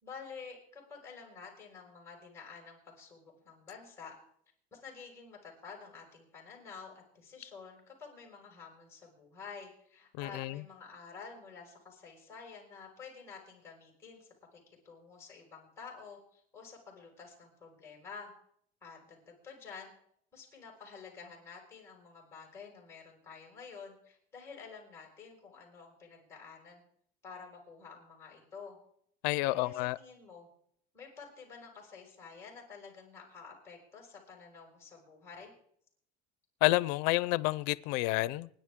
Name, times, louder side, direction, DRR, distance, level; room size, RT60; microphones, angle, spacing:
voice 1, 0.0-4.1 4.7-18.3 18.8-19.9 20.3-26.8 27.2-28.8 29.4-30.5 30.9-35.5, left 5 dB, 15° left, 5.3 m, -50 dB
voice 2, 10.2-10.6 29.2-30.0 36.6-38.5, left 20 dB, 90° left, 0.6 m, -29 dB
28.5 x 10.5 x 3.7 m
cardioid pair, 165°, 20 cm